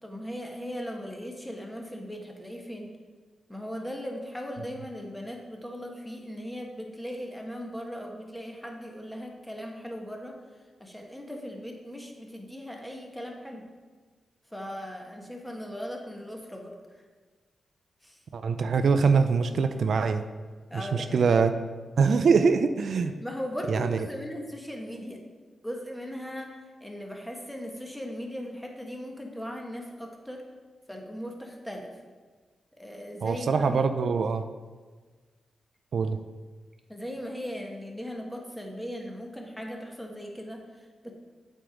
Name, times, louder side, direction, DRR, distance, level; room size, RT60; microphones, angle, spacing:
voice 1, 0.0-2.9 3.5-10.4 10.8-13.7 14.5-16.7 18.0-18.2 20.7-21.4 23.0-25.2 25.6-30.4 30.9-31.9 32.8-33.9 36.9-41.1, equal, 5° left, 1 dB, 1.4 m, -38 dB
voice 2, 18.3-20.2 20.7-21.5 22.0-23.1 23.7-24.0 33.2-34.4 35.9-36.2, right 5 dB, 70° right, 9 dB, 0.4 m, -23 dB
7.7 x 4.6 x 5.1 m, 1.4 s
cardioid pair, 70°, 0 cm